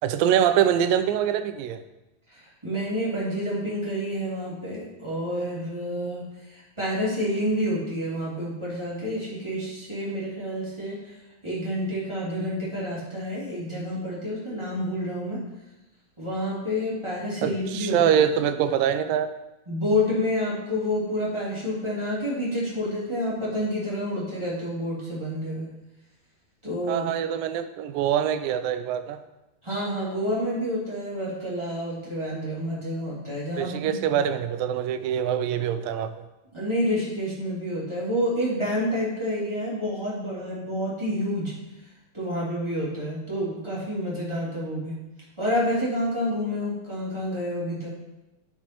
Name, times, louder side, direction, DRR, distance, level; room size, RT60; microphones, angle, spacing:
voice 1, 0.0-1.8 17.4-19.3 26.9-29.2 33.6-36.1, right 9 dB, 80° right, 11 dB, 2.2 m, -24 dB
voice 2, 2.3-11.1 11.4-15.4 16.2-18.0 19.7-25.7 26.6-27.1 29.6-34.1 36.5-41.5 42.1-44.9 45.4-47.9, equal, 10° right, -8 dB, 2.0 m, -29 dB
10.0 x 5.8 x 4.4 m, 0.99 s
omnidirectional pair, 4.1 m